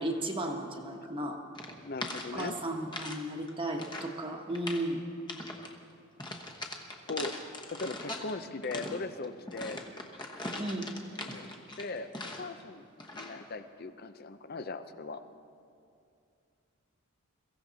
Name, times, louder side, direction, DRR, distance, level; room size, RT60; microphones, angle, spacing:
voice 1, 0.0-1.4 2.3-5.0 10.6-10.9, right 1 dB, 25° right, 2 dB, 1.2 m, -34 dB
sound 1, 1.5-3.2 3.5-4.2 4.5-4.9 5.3-5.7 6.2-8.3 8.6-12.6 13.0-13.4, left 2 dB, 20° left, 1.1 m, -41 dB
voice 2, 1.8-2.6 7.1-7.4 7.7-9.8 11.3-12.9 13.1-15.2, left 3 dB, 45° left, 11 dB, 0.6 m, -39 dB
22.5 x 15.5 x 4.1 m, 2.5 s
head